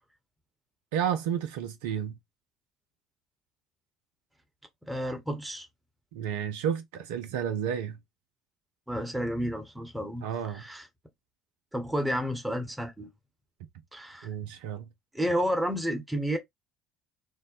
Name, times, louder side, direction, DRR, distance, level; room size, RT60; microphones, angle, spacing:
voice 1, 0.9-2.1 6.1-8.0 10.2-10.6 14.2-14.9, right 8 dB, 70° right, 0.3 m, -31 dB
voice 2, 4.8-5.7 8.9-10.9 11.7-13.1 13.9-14.3 15.1-16.4, equal, 5° right, 1.0 m, -31 dB
2.6 x 2.1 x 3.8 m
figure-of-eight pair, 60°, 0 cm